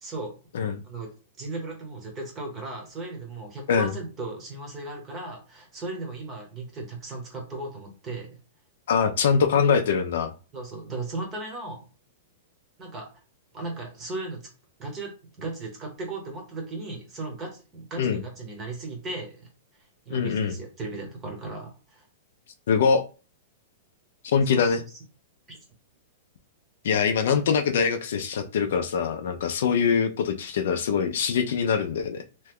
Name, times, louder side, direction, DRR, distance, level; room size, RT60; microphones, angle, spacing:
voice 1, 0.0-0.3 0.8-1.1 1.4-8.4 10.5-11.8 12.8-13.1 13.5-14.4 14.8-15.1 15.4-19.5 20.1-22.1 24.5-24.7 25.5-25.6 27.3-27.4, right 3 dB, 15° right, 0.8 m, -36 dB
voice 2, 8.9-10.3 18.0-18.2 20.1-20.5 22.7-23.0 24.2-24.8 26.8-32.2, left 6 dB, 60° left, 0.4 m, -23 dB
2.9 x 2.2 x 3.5 m
supercardioid pair, 175°, 0 cm